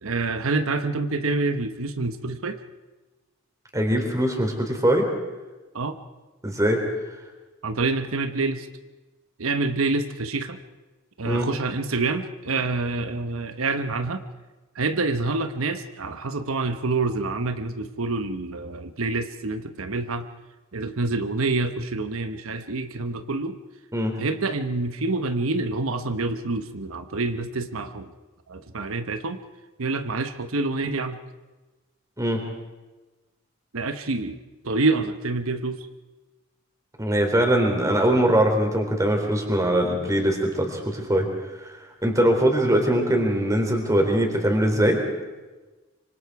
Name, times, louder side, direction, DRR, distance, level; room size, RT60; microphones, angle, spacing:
voice 1, 0.0-2.6 5.7-6.0 7.6-8.7 9.4-10.6 11.2-14.2 14.7-20.3 20.7-23.6 24.2-28.1 28.5-29.4 29.8-31.2 33.7-34.4 34.6-35.9, right 3 dB, 85° right, 8 dB, 1.1 m, -27 dB
voice 2, 3.7-5.1 6.4-6.8 11.2-11.5 23.9-24.1 32.2-32.5 37.0-41.3 41.6-41.7 42.0-45.0, right 1 dB, 15° right, 3 dB, 3.6 m, -22 dB
25.5 x 25.0 x 4.8 m, 1.2 s
head